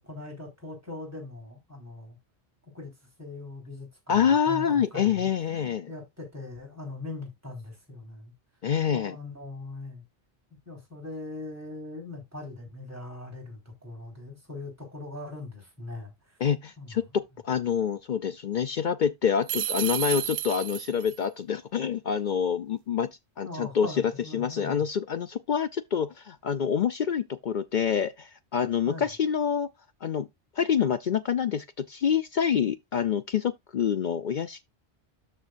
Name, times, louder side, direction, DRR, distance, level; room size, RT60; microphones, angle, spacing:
voice 1, 0.0-2.2 2.7-2.9 3.2-4.2 4.5-8.3 8.9-10.0 10.7-16.4 16.8-17.0 23.4-24.8 28.8-29.1, left 2 dB, 15° right, 4.2 m, -41 dB
voice 2, 4.1-5.9 8.6-9.2 16.4-23.1 23.4-23.9 24.3-29.7 30.0-30.3 30.6-34.6, left 7 dB, 55° left, 0.6 m, -27 dB
sound 1, 19.5-21.2, right 11 dB, 70° right, 0.9 m, -31 dB
13.0 x 4.5 x 2.5 m
omnidirectional pair, 1.2 m